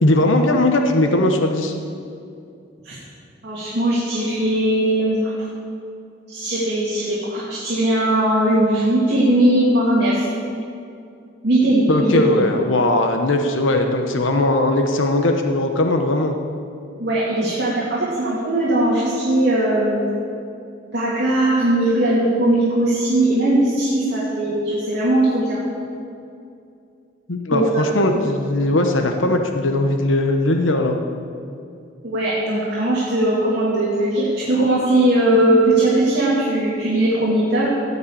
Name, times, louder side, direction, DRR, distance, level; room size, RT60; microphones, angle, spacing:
voice 1, 0.0-1.7 11.9-16.3 27.3-31.0, left 1 dB, 85° left, 4 dB, 1.0 m, -19 dB
voice 2, 3.4-5.3 6.3-10.3 11.4-12.4 17.0-20.0 20.9-25.6 27.5-27.9 32.0-37.6, right 1 dB, 60° right, -7 dB, 2.6 m, -19 dB
16.0 x 5.4 x 8.7 m, 2.5 s
head